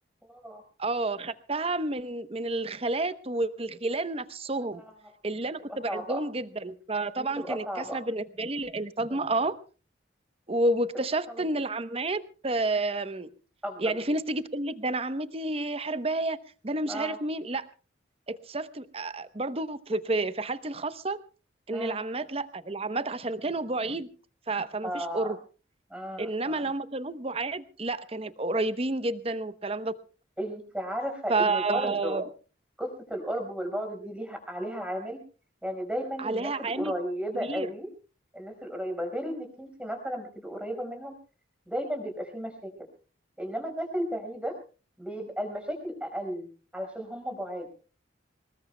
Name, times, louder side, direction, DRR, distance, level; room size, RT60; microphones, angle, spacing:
voice 1, 0.3-0.6 4.7-4.9 5.9-6.2 7.2-8.0 9.1-9.3 11.3-11.4 13.6-13.9 16.9-17.2 21.7-22.0 24.8-25.3 25.9-26.6 30.4-32.2 32.8-35.2 35.6-37.9 38.3-41.2 41.7-42.9 43.4-44.6 45.0-47.7, equal, 5° right, 3 dB, 4.8 m, -34 dB
voice 2, 0.8-4.8 5.2-9.5 10.5-13.3 13.8-17.7 18.3-21.2 21.7-24.1 24.5-25.4 26.2-30.0 31.3-32.2 36.2-36.9 37.4-37.7, right 2 dB, 30° right, 13 dB, 0.8 m, -30 dB
25.0 x 21.0 x 2.2 m, 0.35 s
head